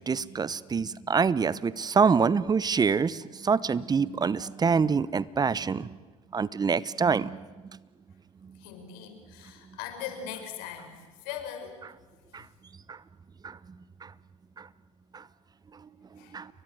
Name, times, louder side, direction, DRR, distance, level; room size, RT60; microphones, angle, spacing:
voice 1, 0.0-6.0 6.3-7.5 12.3-12.4 12.9-13.0 13.4-13.6 14.0-14.1 14.6-14.7 15.1-15.2 16.3-16.5, right 5 dB, 25° right, 19 dB, 0.9 m, -26 dB
voice 2, 8.5-12.5 16.2-16.4, left 9 dB, 65° left, 7 dB, 5.1 m, -41 dB
29.5 x 23.0 x 8.0 m, 1.3 s
hypercardioid pair, 75°, 17 cm